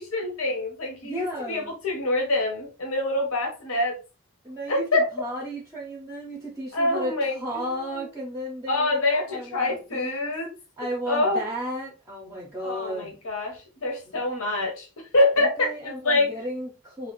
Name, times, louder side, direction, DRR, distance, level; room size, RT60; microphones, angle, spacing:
voice 1, 0.0-4.0 4.7-5.0 6.7-8.1 8.7-10.6 11.1-11.4 12.6-16.3, left 2 dB, 70° left, 0.8 m, -26 dB
voice 2, 1.0-1.7 4.4-10.3 10.8-13.2 14.1-14.2 15.4-17.1, equal, 15° right, 0.5 m, -34 dB
2.8 x 2.4 x 2.9 m
head